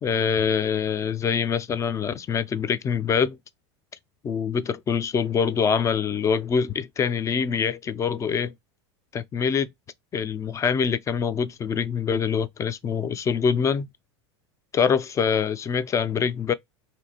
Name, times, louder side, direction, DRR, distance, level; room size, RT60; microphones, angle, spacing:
voice 1, 0.0-3.4 4.2-8.5 9.1-9.7 10.1-13.9 14.7-16.5, left 6 dB, 20° left, 0.3 m, -24 dB
2.9 x 2.6 x 2.8 m
hypercardioid pair, 105°, 15 cm